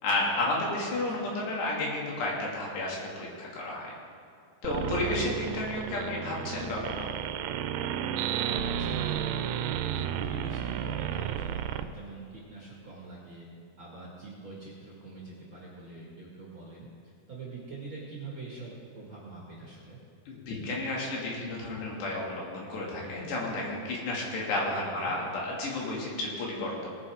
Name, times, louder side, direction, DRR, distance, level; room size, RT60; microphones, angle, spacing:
voice 1, 0.0-3.9 4.6-7.1 20.3-26.9, left 2 dB, 85° left, -4 dB, 4.4 m, -32 dB
sound 1, 4.6-11.8, right 9 dB, 90° right, 2.7 m, -32 dB
voice 2, 8.3-9.4 9.8-13.5 13.8-20.0 24.8-25.1, right 3 dB, 40° right, -5 dB, 1.8 m, -44 dB
18.5 x 9.6 x 3.6 m, 2.6 s
omnidirectional pair, 4.7 m